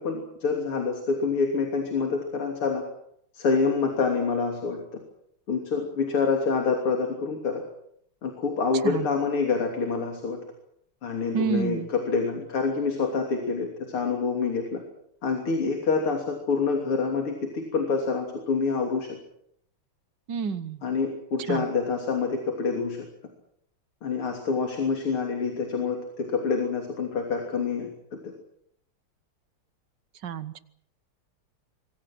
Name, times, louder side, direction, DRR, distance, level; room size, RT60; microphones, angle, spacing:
voice 1, 0.0-2.8 3.3-4.8 5.5-7.6 8.2-10.4 11.0-14.8 15.2-19.1 20.8-23.1 24.0-27.9 28.2-28.3, left 4 dB, 80° left, 2 dB, 4.0 m, -27 dB
voice 2, 11.3-11.9 20.3-20.8 21.5-21.6 30.2-30.6, right 6 dB, 60° right, 13 dB, 1.7 m, -29 dB
26.0 x 23.0 x 6.1 m, 0.71 s
omnidirectional pair, 2.4 m